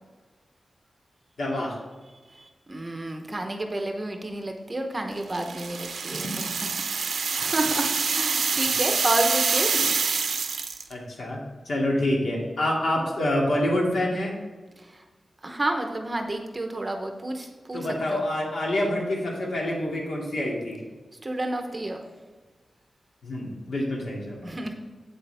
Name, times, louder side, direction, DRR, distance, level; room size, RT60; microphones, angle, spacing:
voice 1, 1.4-1.8 6.1-6.3 9.7-9.8 10.9-11.4 11.7-14.4 17.7-20.8 23.2-24.5, left 1 dB, 70° left, -3 dB, 2.3 m, -27 dB
voice 2, 2.7-6.3 6.9-9.7 15.4-18.2 21.2-22.0 24.4-24.7, right 1 dB, 20° right, 4 dB, 0.8 m, -30 dB
sound 1, 5.3-10.9, right 5 dB, 85° right, 0.7 m, -26 dB
8.3 x 7.9 x 3.4 m, 1.3 s
wide cardioid pair, 160°, 0 cm